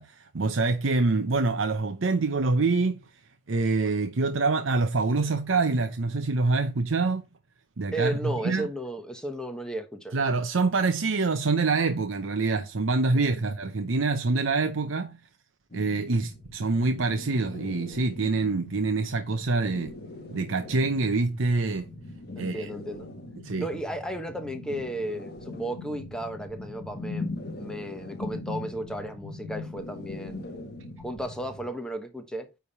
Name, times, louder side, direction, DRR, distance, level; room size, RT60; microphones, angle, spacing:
voice 1, 0.0-3.0 3.5-7.2 7.8-8.7 10.1-15.2 15.7-19.9 20.3-21.9 22.4-22.7 23.4-23.7, right 3 dB, 75° right, 0.7 m, -26 dB
voice 2, 7.9-10.2 13.1-13.5 22.4-23.1 23.6-30.5 31.0-32.5, right 1 dB, 5° left, 0.9 m, -34 dB
sound 1, 15.7-31.7, left 2 dB, 50° left, 1.3 m, -40 dB
9.3 x 3.5 x 5.5 m
head